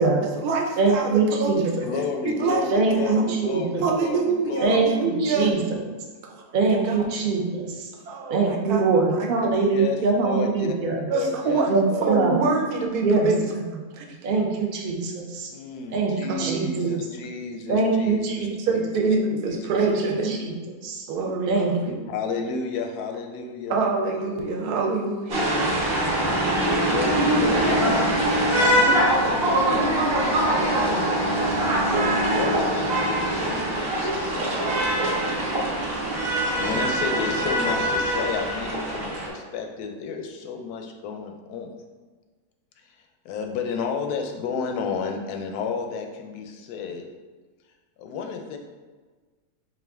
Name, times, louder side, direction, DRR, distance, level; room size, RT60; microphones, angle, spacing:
voice 1, 0.0-1.7 2.4-2.6 3.0-3.2 3.8-5.5 6.7-7.0 8.1-8.9 9.1-9.5 11.1-11.7 12.0-13.5 13.7-14.2 16.3-17.0 18.6-20.4 21.1-21.9 23.7-25.5 28.6-28.8, right 3 dB, 85° right, 1 dB, 1.2 m, -26 dB
voice 2, 0.8-1.6 2.7-3.9 4.6-5.6 6.5-7.8 8.3-11.1 11.7-12.3 13.0-13.3 13.5-13.6 14.2-15.5 15.9-16.1 16.4-16.9 17.7-18.5 19.7-19.9 20.2-20.5 20.8-21.0 21.5-22.0, right 3 dB, 65° right, 0 dB, 0.5 m, -23 dB
voice 3, 1.8-4.9 9.7-10.8 11.1-12.1 15.5-18.5 18.7-19.1 22.1-23.8 26.1-26.4 26.8-28.2 29.2-29.9 30.6-31.3 31.8-34.6 36.5-41.7 42.8-43.0 43.2-47.0 48.0-48.6, left 5 dB, 85° left, 3 dB, 1.1 m, -32 dB
sound 1, 25.3-39.3, right 1 dB, 45° right, 0.9 m, -23 dB
4.4 x 2.4 x 3.4 m, 1.4 s
omnidirectional pair, 1.6 m